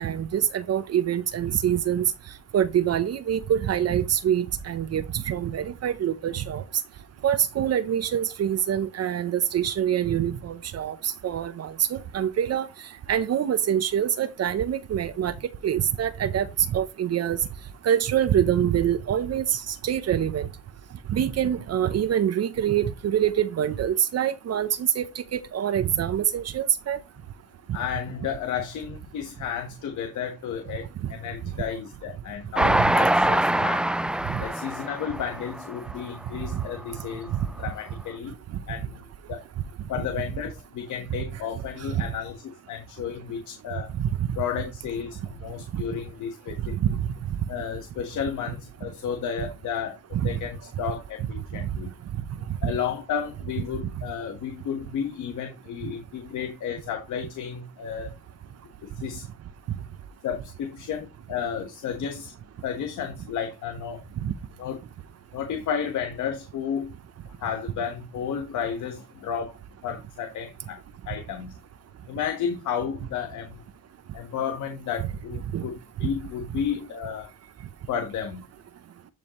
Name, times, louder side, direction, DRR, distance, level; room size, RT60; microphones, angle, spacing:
voice 1, 0.0-2.1 2.5-6.6 7.2-12.7 13.1-15.3 15.6-16.5 16.7-17.4 17.8-20.5 21.1-27.0 34.3-34.4 37.3-37.4 41.9-42.0 44.0-44.1 45.7-45.8 46.8-47.1 50.1-50.3 52.6-52.7 64.2-64.3 75.5-75.6, right 9 dB, 55° right, 0.8 m, -25 dB
voice 2, 27.7-33.8 34.4-37.3 37.6-38.3 38.7-39.4 39.9-43.9 44.4-46.8 47.5-51.9 52.6-58.1 58.8-59.2 60.2-62.3 62.6-64.0 64.6-64.8 65.3-66.9 67.4-70.8 71.1-71.5 72.1-73.6 74.1-77.3 77.9-78.4, left 7 dB, 75° left, 1.4 m, -32 dB
Train, 32.6-36.0 36.5-36.6 36.9-37.0, right 1 dB, 5° right, 0.3 m, -24 dB
11.0 x 5.0 x 3.1 m
cardioid pair, 90°, 30 cm